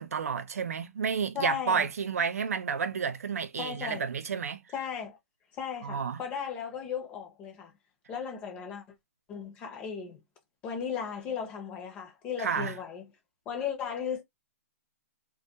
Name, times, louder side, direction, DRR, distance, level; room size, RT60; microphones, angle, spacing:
voice 1, 0.0-4.6 5.8-6.2 12.4-12.7, right 6 dB, 90° right, 0.5 m, -31 dB
voice 2, 1.3-1.9 3.6-4.1 4.7-5.2 5.5-7.7 8.1-8.8 9.3-10.2 10.6-13.1 13.5-14.2, left 7 dB, 15° left, 0.6 m, -36 dB
2.2 x 2.2 x 2.7 m
hypercardioid pair, 165°, 8 cm